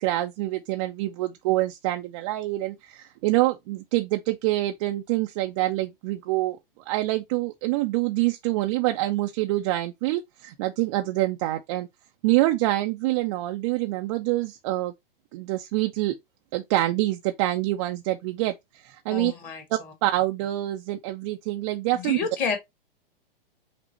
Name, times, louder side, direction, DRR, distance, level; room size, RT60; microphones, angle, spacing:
voice 1, 0.0-6.6 6.9-11.9 12.2-14.9 15.3-16.1 16.5-19.3 20.0-22.2, right 17 dB, 35° right, 0.5 m, -26 dB
voice 2, 19.1-19.9 21.9-22.6, left 5 dB, 30° left, 1.7 m, -30 dB
5.7 x 2.1 x 4.1 m
figure-of-eight pair, 105°, 29 cm